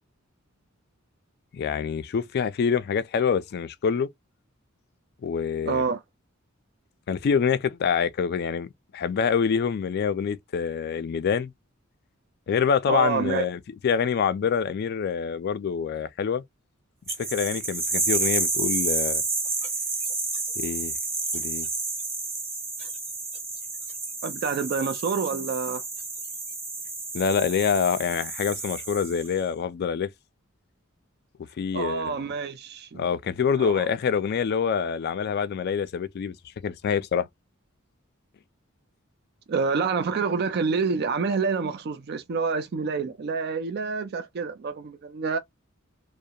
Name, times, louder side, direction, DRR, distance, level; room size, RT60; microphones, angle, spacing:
voice 1, 1.5-4.1 5.2-5.8 7.1-11.5 12.5-16.4 17.1-19.2 20.6-20.9 21.3-21.7 27.1-30.1 31.6-32.2 32.9-36.3 36.6-37.3, left 6 dB, 50° left, 0.3 m, -26 dB
voice 2, 5.6-6.0 12.9-13.4 24.2-25.8 31.7-33.0 33.6-33.8 39.5-45.4, right 5 dB, 50° right, 0.4 m, -27 dB
sound 1, 17.1-29.4, right 3 dB, 30° right, 1.2 m, -30 dB
2.7 x 2.1 x 2.3 m
head